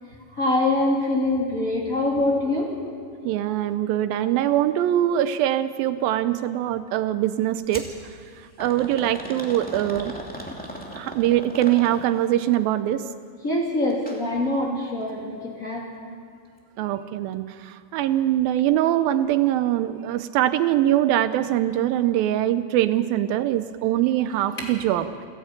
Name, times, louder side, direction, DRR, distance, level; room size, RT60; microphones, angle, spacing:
voice 1, 0.3-3.3 13.3-15.9, left 2 dB, 25° left, -2 dB, 2.8 m, -24 dB
voice 2, 3.3-7.9 8.6-10.1 10.9-13.0 16.8-25.1, right 12 dB, 80° right, 12 dB, 2.4 m, -23 dB
sound 1, 7.7-7.9 8.6-12.3 13.9-14.2 14.6-14.7 15.5-15.6, equal, 5° left, 1.6 m, -37 dB
29.5 x 10.5 x 8.8 m, 2.2 s
omnidirectional pair, 4.2 m